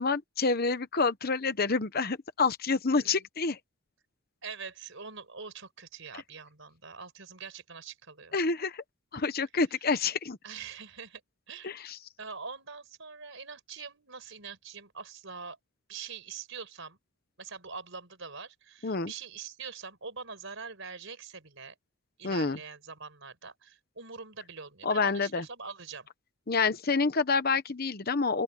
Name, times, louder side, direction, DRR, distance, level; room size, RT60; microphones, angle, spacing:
voice 1, 0.0-3.6 8.3-8.8 9.1-10.4 11.6-12.0 18.8-19.1 22.2-22.6 24.8-25.4 26.5-28.4, left 4 dB, 45° left, 0.9 m, -28 dB
voice 2, 4.4-8.4 10.4-11.2 11.5-11.7 12.2-15.6 15.9-17.0 17.4-21.7 22.2-26.1, right 5 dB, 60° right, 5.3 m, -44 dB
open air
head